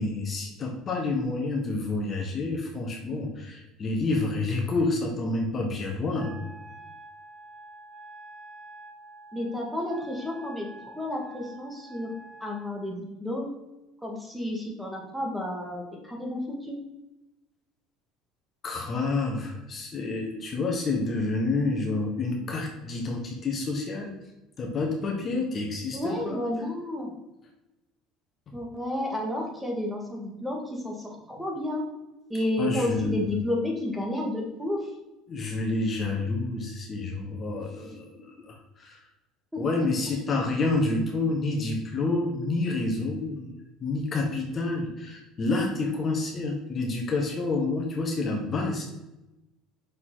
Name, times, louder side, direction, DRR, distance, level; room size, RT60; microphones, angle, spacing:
voice 1, 0.0-6.3 18.6-24.1 24.6-26.4 32.6-33.2 35.3-39.0 39.6-43.5 43.8-48.8, left 3 dB, 35° left, 1 dB, 1.5 m, -29 dB
Wind instrument woodwind instrument, 6.1-12.7, right 2 dB, 30° right, 1.9 m, -47 dB
voice 2, 9.3-12.1 12.4-13.5 14.0-16.8 25.9-27.1 28.5-31.8 32.3-34.9 39.5-40.3, left 1 dB, 5° right, -1 dB, 2.0 m, -31 dB
6.4 x 5.7 x 3.9 m, 0.97 s
supercardioid pair, 105°, 0 cm